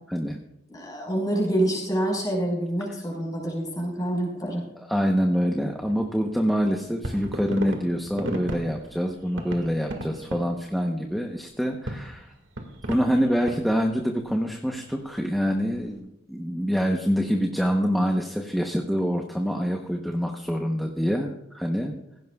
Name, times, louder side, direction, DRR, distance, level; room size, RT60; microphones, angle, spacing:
voice 1, 0.1-0.4 4.9-12.3 12.9-21.9, equal, ahead, 1 dB, 0.9 m, -26 dB
voice 2, 0.7-4.6, right 1 dB, 20° left, -1 dB, 5.0 m, -27 dB
sound 1, 5.6-16.0, right 1 dB, 90° right, 2.0 m, -37 dB
16.5 x 16.5 x 2.4 m, 0.82 s
head